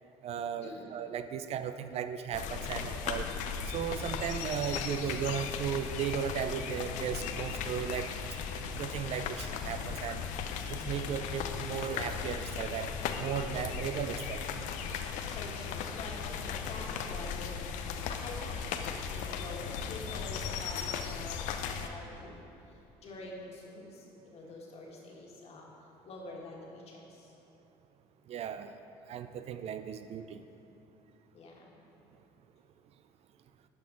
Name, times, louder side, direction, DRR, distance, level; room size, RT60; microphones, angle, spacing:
voice 1, 0.2-3.3 3.7-8.1 8.8-10.3 10.6-14.5 28.3-28.8 29.1-30.4, right 8 dB, 50° right, 10 dB, 0.4 m, -36 dB
sound 1, 2.3-21.9, left 6 dB, 70° left, 0.6 m, -37 dB
voice 2, 15.2-18.6 19.0-22.4 23.0-25.7 26.0-27.3 31.3-31.8, left 2 dB, 50° left, -2 dB, 1.8 m, -46 dB
11.5 x 5.1 x 3.9 m, 2.9 s
hypercardioid pair, 65°, 13 cm